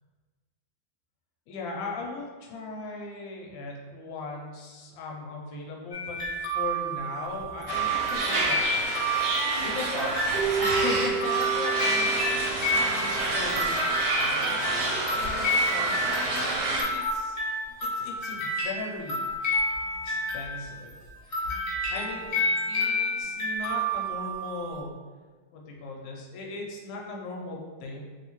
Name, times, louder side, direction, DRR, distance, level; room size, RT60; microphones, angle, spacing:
voice 1, 1.5-9.0 9.6-17.4 17.8-19.3 19.9-21.0 21.2-22.3 22.7-24.9 25.5-28.0, left 3 dB, 80° left, -1 dB, 1.3 m, -39 dB
sound 1, 5.9-20.9 21.3-24.8, equal, 50° left, 0.8 m, -30 dB
sound 2, 7.7-16.8, right 2 dB, 90° right, 1.4 m, -29 dB
Keyboard (musical), 10.3-13.6, right 6 dB, 70° right, 1.1 m, -31 dB
3.3 x 2.7 x 2.9 m, 1.4 s
omnidirectional pair, 2.1 m